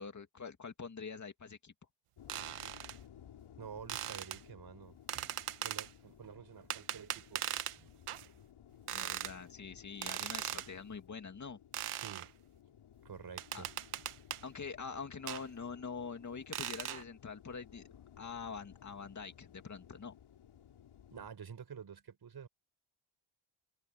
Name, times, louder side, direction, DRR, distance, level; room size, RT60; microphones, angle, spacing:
voice 1, 0.0-1.7 8.9-11.6 13.5-13.6 14.4-17.8 18.2-20.1, left 5 dB, 35° left, 2.5 m, -45 dB
sound 1, 2.2-21.3, left 9 dB, 70° left, 4.5 m, -58 dB
sound 2, 2.3-3.0 3.9-4.4 5.1-5.9 6.7-7.8 8.1-8.3 8.9-9.3 10.0-10.7 11.7-12.3 13.4-14.4 15.3-15.4 16.5-17.0, right 12 dB, 85° right, 1.3 m, -39 dB
voice 2, 3.6-7.5 7.8-7.9 11.9-12.3 13.0-13.7 21.1-22.5, right 7 dB, 50° right, 5.2 m, -50 dB
open air
wide cardioid pair, 130°, 50 cm